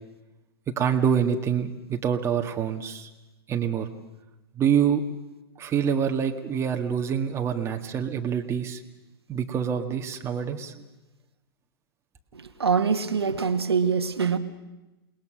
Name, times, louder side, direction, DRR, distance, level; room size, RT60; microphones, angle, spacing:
voice 1, 0.8-3.1 3.5-3.9 4.6-5.0 5.6-8.8 9.3-10.7, right 8 dB, 20° right, 4 dB, 1.9 m, -26 dB
voice 2, 12.6-14.4, right 5 dB, 80° right, 8 dB, 1.6 m, -24 dB
28.5 x 20.0 x 6.5 m, 1.0 s
figure-of-eight pair, 115°, 13 cm